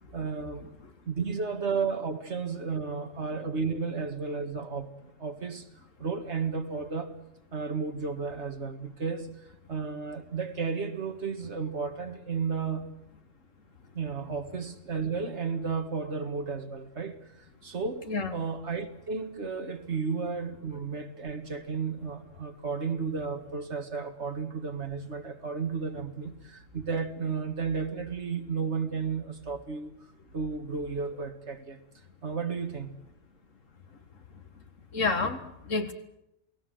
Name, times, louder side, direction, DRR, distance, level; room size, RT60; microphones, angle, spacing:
voice 1, 0.1-0.7 1.1-5.7 6.0-7.1 7.5-9.3 9.7-12.9 13.9-29.9 30.3-31.8 32.2-32.9, right 5 dB, 65° right, 2.1 m, -33 dB
voice 2, 34.9-35.9, left 4 dB, 85° left, 2.3 m, -29 dB
28.0 x 19.0 x 7.9 m
omnidirectional pair, 1.3 m